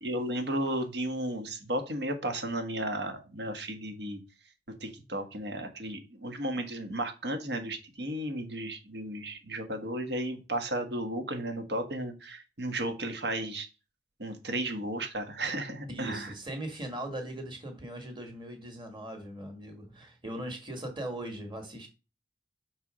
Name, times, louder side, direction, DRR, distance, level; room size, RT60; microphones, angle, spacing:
voice 1, 0.0-4.2 4.7-13.7 14.2-16.3, right 1 dB, 65° right, 1.3 m, -34 dB
voice 2, 15.9-21.9, right 1 dB, 25° right, 1.8 m, -39 dB
5.8 x 4.6 x 5.0 m
head